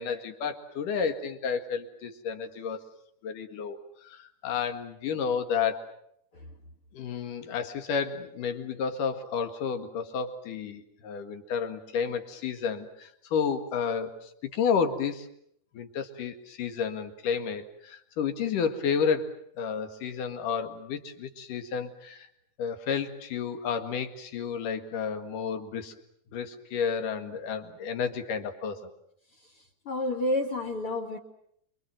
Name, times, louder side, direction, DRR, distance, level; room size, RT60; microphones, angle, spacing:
voice 1, 0.0-2.8 3.2-5.8 6.9-15.3 15.7-22.3 22.6-25.9 26.3-28.9, left 6 dB, 65° left, 7 dB, 3.2 m, -31 dB
voice 2, 29.9-31.2, left 1 dB, 45° left, 3 dB, 2.4 m, -29 dB
28.0 x 24.0 x 7.7 m, 0.71 s
omnidirectional pair, 4.4 m